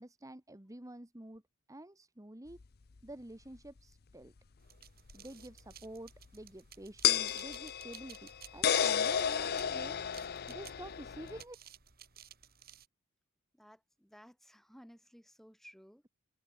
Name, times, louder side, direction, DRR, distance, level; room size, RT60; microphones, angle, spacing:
voice 1, 0.0-1.4 1.7-2.6 3.0-4.3 5.1-10.0 10.5-11.6, right 1 dB, 15° right, 1.4 m, -49 dB
sound 1, 2.6-2.7 5.1-5.2 7.0-11.4, left 9 dB, 45° left, 0.6 m, -32 dB
sound 2, 4.6-12.9, right 9 dB, 45° right, 6.7 m, -56 dB
voice 2, 13.5-16.0, equal, ahead, 4.2 m, -57 dB
open air
head